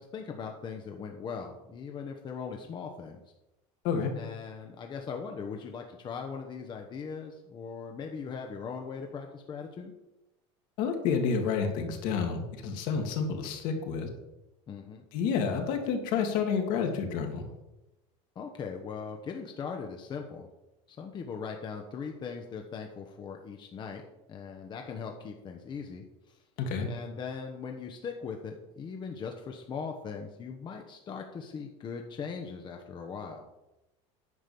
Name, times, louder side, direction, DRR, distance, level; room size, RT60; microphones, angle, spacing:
voice 1, 0.0-3.2 4.2-9.9 14.7-15.0 18.3-20.5 20.9-24.0 24.3-26.4 26.9-33.4, left 5 dB, 30° left, 3 dB, 1.1 m, -40 dB
voice 2, 10.8-14.1 15.1-17.4 26.6-26.9, left 6 dB, 60° left, 4 dB, 2.2 m, -29 dB
9.7 x 5.1 x 7.0 m, 0.97 s
supercardioid pair, 120°, 15 cm